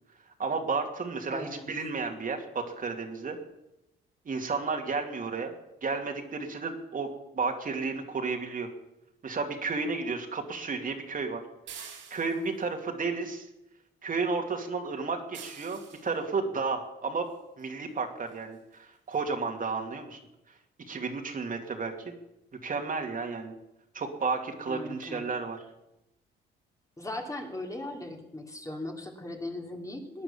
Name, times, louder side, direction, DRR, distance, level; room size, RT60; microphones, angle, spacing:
voice 1, 0.4-3.4 4.3-5.5 5.8-7.1 7.3-8.7 9.2-11.4 11.7-13.5 14.0-17.3 17.6-20.2 20.9-21.9 22.6-23.5 23.9-25.6, right 4 dB, 45° right, 3 dB, 2.5 m, -32 dB
voice 2, 1.3-1.7 24.7-25.2 27.0-30.2, left 1 dB, 15° left, 2 dB, 2.8 m, -38 dB
sound 1, 11.7-12.6 15.3-16.1 17.6-17.7 18.3-18.4 18.7-18.8 19.1-19.2, right 7 dB, 85° right, 4.7 m, -46 dB
18.5 x 10.0 x 7.1 m, 0.90 s
cardioid pair, 90°, 20 cm